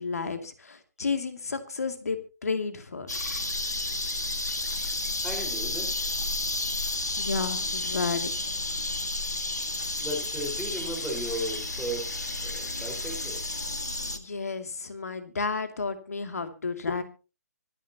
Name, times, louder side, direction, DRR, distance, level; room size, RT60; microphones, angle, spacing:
voice 1, 0.0-3.2 7.0-8.7 14.1-17.0, left 4 dB, 65° left, 8 dB, 2.6 m, -32 dB
sound 1, 3.1-14.2, left 2 dB, 80° left, 1.9 m, -31 dB
voice 2, 4.8-6.3 9.6-13.4, right 1 dB, ahead, 0 dB, 4.8 m, -37 dB
25.0 x 10.0 x 2.9 m, 0.32 s
figure-of-eight pair, 135°, 9 cm